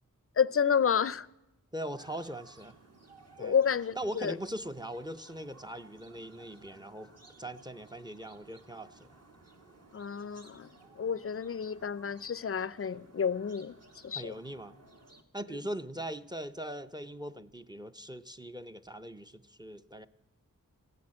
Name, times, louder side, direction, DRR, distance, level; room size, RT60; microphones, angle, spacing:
voice 1, 0.4-1.3 3.4-4.3 9.9-10.7 11.0-13.7 14.0-14.3, left 7 dB, 45° left, 0.4 m, -30 dB
voice 2, 1.7-2.8 3.4-3.5 4.0-7.1 7.4-9.1 14.1-14.8 15.3-20.1, right 1 dB, 15° right, 0.5 m, -40 dB
sound 1, 2.0-15.2, right 2 dB, 50° right, 1.7 m, -58 dB
15.0 x 10.5 x 8.6 m
wide cardioid pair, 75°, 33 cm